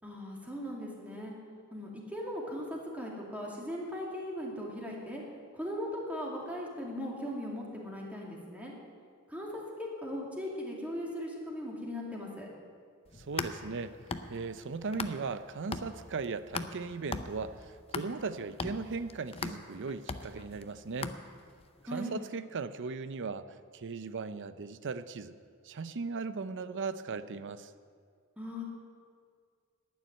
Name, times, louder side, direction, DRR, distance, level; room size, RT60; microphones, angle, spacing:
voice 1, 0.0-1.3 1.7-5.2 5.5-8.7 9.3-12.5 21.9-22.2 28.4-28.6, equal, 5° right, -3 dB, 2.6 m, -38 dB
sound 1, 13.1-15.4 15.7-21.6, left 4 dB, 25° left, 0.6 m, -40 dB
voice 2, 13.1-14.0 14.3-21.2 21.9-25.3 25.6-27.7, right 4 dB, 60° right, 13 dB, 0.6 m, -38 dB
11.5 x 9.4 x 9.6 m, 2.1 s
head